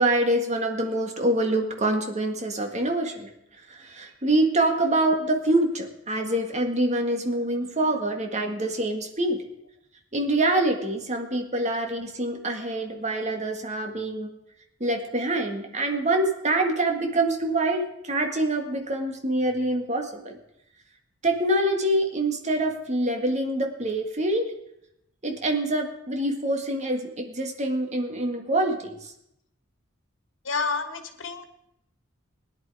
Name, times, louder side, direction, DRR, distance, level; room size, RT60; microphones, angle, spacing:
voice 1, 0.0-3.3 3.7-9.4 10.1-14.3 14.8-20.3 21.2-24.5 25.2-29.1, right 1 dB, 35° right, 3 dB, 1.8 m, -25 dB
voice 2, 30.4-31.4, left 4 dB, 70° left, 7 dB, 1.5 m, -29 dB
17.0 x 10.5 x 4.8 m, 0.81 s
head